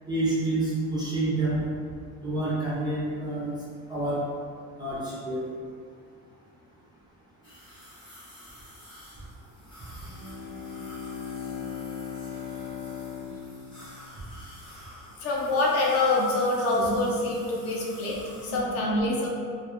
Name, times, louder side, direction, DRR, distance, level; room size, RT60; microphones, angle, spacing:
voice 1, 0.1-1.6 2.2-3.5 3.9-4.2 4.8-5.4 16.8-17.0 18.5-19.1, right 2 dB, 15° right, -8 dB, 0.3 m, -28 dB
sound 1, 7.4-18.5, left 1 dB, 15° left, 0.8 m, -49 dB
Bowed string instrument, 10.0-14.8, left 7 dB, 80° left, 0.9 m, -38 dB
voice 2, 15.2-19.3, left 2 dB, 50° left, -3 dB, 0.5 m, -26 dB
2.2 x 2.0 x 2.8 m, 2.1 s
cardioid pair, 155°, 31 cm